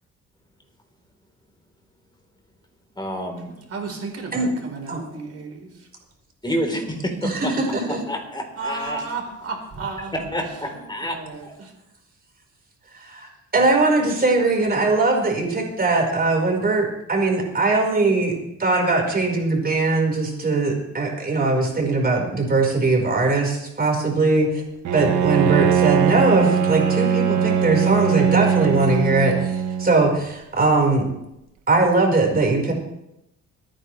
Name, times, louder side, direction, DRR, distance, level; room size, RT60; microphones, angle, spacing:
voice 1, 3.0-3.5 6.4-7.6 7.8-9.0 10.1-11.5, equal, 15° left, 2 dB, 3.9 m, -29 dB
voice 2, 3.7-5.7 8.6-10.2 11.0-11.7, right 4 dB, 50° right, 2 dB, 4.4 m, -33 dB
voice 3, 7.2-8.0 13.0-18.3 18.6-24.6 24.9-31.1 31.7-32.7, right 3 dB, 30° right, 0 dB, 4.9 m, -20 dB
Bowed string instrument, 24.8-30.2, right 8 dB, 75° right, 1.4 m, -21 dB
25.5 x 10.0 x 3.3 m, 0.85 s
cardioid pair, 90°, 30 cm